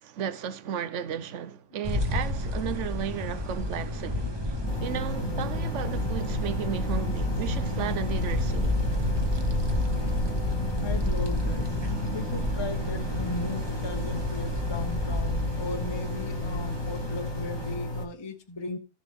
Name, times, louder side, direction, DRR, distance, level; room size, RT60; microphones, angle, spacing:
voice 1, 0.0-8.8, right 9 dB, 65° right, 1.0 m, -34 dB
sound 1, 1.8-17.8, left 1 dB, 20° right, 1.0 m, -30 dB
sound 2, 4.6-13.5, right 2 dB, 90° right, 2.8 m, -39 dB
sound 3, 4.7-18.1, left 2 dB, 80° left, 1.7 m, -34 dB
voice 2, 9.9-10.3 10.8-18.8, left 2 dB, 25° left, 0.8 m, -38 dB
13.0 x 7.0 x 3.6 m
omnidirectional pair, 1.5 m